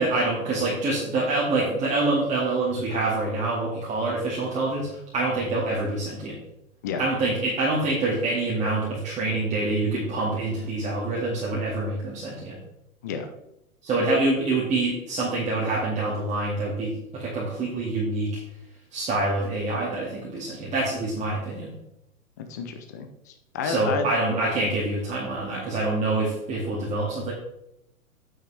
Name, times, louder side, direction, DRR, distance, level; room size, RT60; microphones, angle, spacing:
voice 1, 0.0-6.4 7.0-12.6 13.8-18.4 18.9-21.7 23.6-27.3, right 2 dB, 15° right, -6 dB, 2.2 m, -26 dB
voice 2, 22.4-24.1, left 5 dB, 15° left, 7 dB, 0.4 m, -31 dB
8.9 x 8.9 x 3.3 m, 0.81 s
figure-of-eight pair, 115°, 44 cm